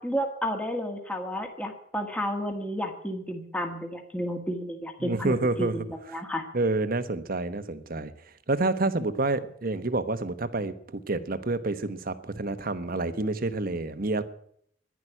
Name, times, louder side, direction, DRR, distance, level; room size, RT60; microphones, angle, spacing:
voice 1, 0.0-5.8 6.1-6.4, equal, 5° left, 4 dB, 1.7 m, -31 dB
voice 2, 5.0-5.8 6.1-6.2 6.5-8.1 8.5-14.2, right 2 dB, 45° right, 12 dB, 1.1 m, -28 dB
11.0 x 10.5 x 9.9 m, 0.67 s
head